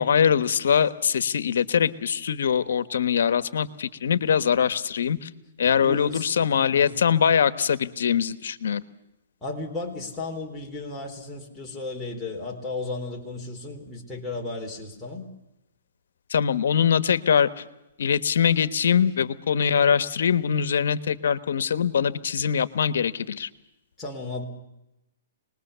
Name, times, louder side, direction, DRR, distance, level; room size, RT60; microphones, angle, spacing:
voice 1, 0.0-5.3 5.6-8.8 16.3-17.6 18.0-23.5, left 7 dB, 75° left, 14 dB, 1.2 m, -23 dB
voice 2, 5.6-6.3 6.7-7.0 9.4-15.3 24.0-24.4, left 3 dB, 5° left, -3 dB, 3.8 m, -34 dB
26.0 x 20.5 x 6.9 m, 0.90 s
hypercardioid pair, 155°, 0 cm